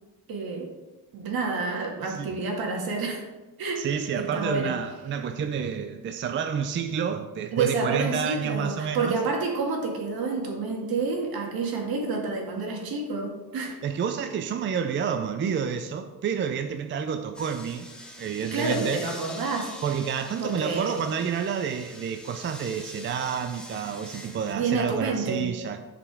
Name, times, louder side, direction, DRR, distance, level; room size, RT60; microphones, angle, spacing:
voice 1, 0.3-0.7 1.1-3.2 3.6-3.8 4.1-4.7 7.5-13.8 18.4-19.7 20.4-21.0 24.5-25.5, right 4 dB, 70° right, 1 dB, 2.0 m, -29 dB
voice 2, 2.0-2.3 3.8-9.2 13.8-17.9 18.2-19.1 19.8-25.8, right 7 dB, 30° right, 7 dB, 0.4 m, -29 dB
sound 1, 17.3-24.5, left 1 dB, ahead, 1.0 m, -44 dB
10.5 x 5.0 x 4.8 m, 1.2 s
cardioid pair, 160°, 37 cm